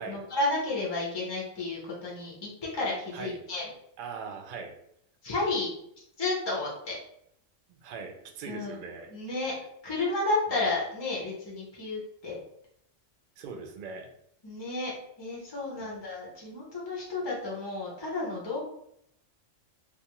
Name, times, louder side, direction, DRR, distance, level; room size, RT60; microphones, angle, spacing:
voice 1, 0.0-3.7 5.2-5.7 6.2-6.9 8.5-8.8 9.1-9.5 9.8-12.4 14.4-18.6, left 2 dB, 30° left, -4 dB, 0.4 m, -32 dB
voice 2, 4.0-4.7 7.7-9.1 13.4-14.1 15.8-16.0, right 5 dB, 65° right, 3 dB, 0.5 m, -40 dB
2.5 x 2.3 x 2.9 m, 0.74 s
omnidirectional pair, 1.3 m